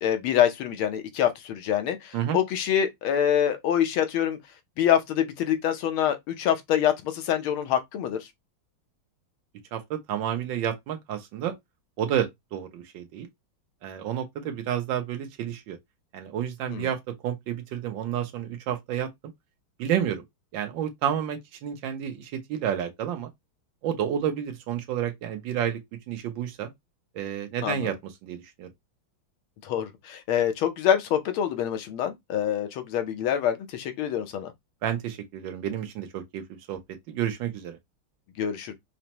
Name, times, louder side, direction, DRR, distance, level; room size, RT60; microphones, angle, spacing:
voice 1, 0.0-4.4 4.8-8.2 16.7-16.9 27.6-27.9 29.6-34.5 38.4-38.7, left 10 dB, 85° left, 1.6 m, -25 dB
voice 2, 9.7-11.5 12.0-13.3 13.8-15.8 16.1-19.1 19.8-20.2 20.5-23.3 23.8-25.8 26.1-26.7 27.1-28.7 34.8-36.4 36.7-36.8 37.1-37.8, right 9 dB, 75° right, 1.4 m, -30 dB
5.1 x 2.1 x 2.9 m
omnidirectional pair, 2.2 m